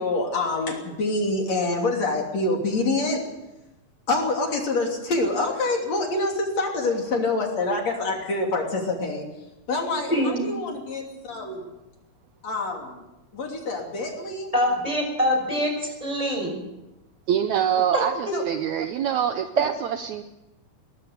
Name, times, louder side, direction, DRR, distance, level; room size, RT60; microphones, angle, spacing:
voice 1, 0.0-3.2 4.1-9.3 9.7-11.7 12.4-13.1 13.3-14.5 18.3-18.4, left 2 dB, 55° left, 1 dB, 4.0 m, -26 dB
voice 2, 10.1-10.5 14.5-16.6 17.9-18.4, equal, 10° right, 1 dB, 6.2 m, -24 dB
voice 3, 17.3-20.2, right 9 dB, 70° right, 8 dB, 1.9 m, -25 dB
22.0 x 19.0 x 6.8 m, 0.97 s
omnidirectional pair, 3.9 m